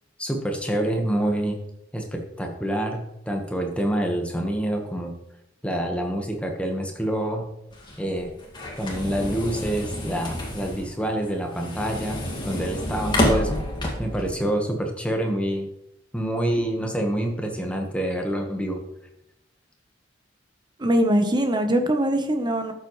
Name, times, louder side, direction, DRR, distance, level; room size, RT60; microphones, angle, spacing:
voice 1, 0.2-1.6 1.9-5.1 5.6-7.5 8.0-8.3 8.8-13.6 14.0-15.7 16.1-18.8, right 1 dB, 5° left, 2 dB, 1.3 m, -27 dB
sound 1, 7.7-14.3, left 1 dB, 25° left, 2.1 m, -29 dB
voice 2, 20.8-22.7, right 1 dB, 25° right, 6 dB, 1.0 m, -22 dB
12.5 x 7.3 x 3.2 m, 0.81 s
head